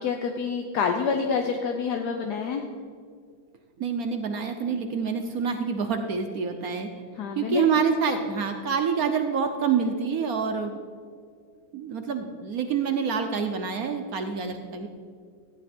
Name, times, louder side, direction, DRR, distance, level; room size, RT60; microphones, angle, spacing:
voice 1, 0.0-2.6 7.2-7.6, left 5 dB, 65° left, 4 dB, 1.1 m, -27 dB
voice 2, 3.8-6.9 7.4-10.7 11.7-14.9, right 6 dB, 65° right, 5 dB, 0.9 m, -27 dB
14.0 x 9.9 x 4.3 m, 2.1 s
omnidirectional pair, 2.3 m